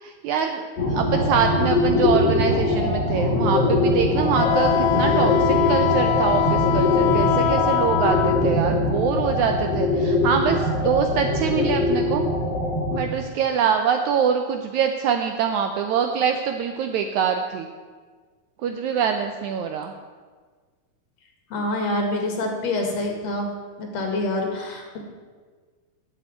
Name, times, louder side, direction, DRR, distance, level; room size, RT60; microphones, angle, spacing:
voice 1, 0.0-12.2 12.9-17.7 18.6-19.9, right 7 dB, 75° right, 5 dB, 1.8 m, -24 dB
sound 1, 0.8-13.0, left 2 dB, 35° left, 2.2 m, -22 dB
Wind instrument woodwind instrument, 4.4-8.5, left 11 dB, 80° left, 1.9 m, -23 dB
voice 2, 21.5-23.5 23.8-25.1, left 2 dB, 55° left, 2 dB, 2.8 m, -26 dB
10.0 x 8.0 x 9.0 m, 1.5 s
omnidirectional pair, 4.0 m